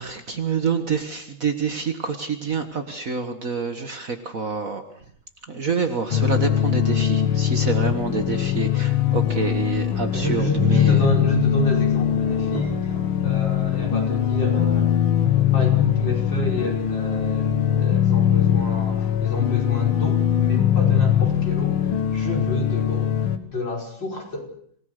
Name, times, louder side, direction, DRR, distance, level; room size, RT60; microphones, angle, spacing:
voice 1, 0.0-4.8 5.5-11.0, right 5 dB, 45° right, 7 dB, 1.7 m, -27 dB
sound 1, 6.1-23.4, left 10 dB, 75° left, 2.2 m, -21 dB
voice 2, 10.1-13.0 13.2-24.5, equal, 60° left, 0 dB, 6.0 m, -29 dB
Thunder / Rain, 10.8-22.7, right 1 dB, 15° right, 3.2 m, -42 dB
26.5 x 18.0 x 6.6 m, 0.65 s
omnidirectional pair, 2.3 m